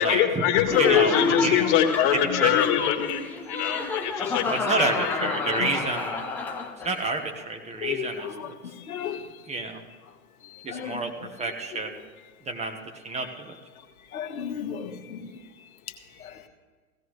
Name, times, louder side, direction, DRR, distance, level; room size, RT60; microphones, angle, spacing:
voice 1, 0.0-6.0, left 10 dB, 40° left, 3 dB, 1.7 m, -24 dB
Laughter, 0.7-7.0, left 4 dB, 5° left, 0.3 m, -29 dB
voice 2, 0.8-1.7 2.4-2.5 4.5-6.2 6.8-8.3 9.5-9.8 10.6-11.1 11.4-12.1 12.5-13.6, right 3 dB, 15° right, 4 dB, 1.1 m, -29 dB
voice 3, 7.8-8.5 8.9-9.2 10.5-11.0 14.1-15.2 16.2-16.5, left 9 dB, 70° left, 3 dB, 1.4 m, -34 dB
16.5 x 15.5 x 3.2 m, 1.4 s
hypercardioid pair, 105°, 44 cm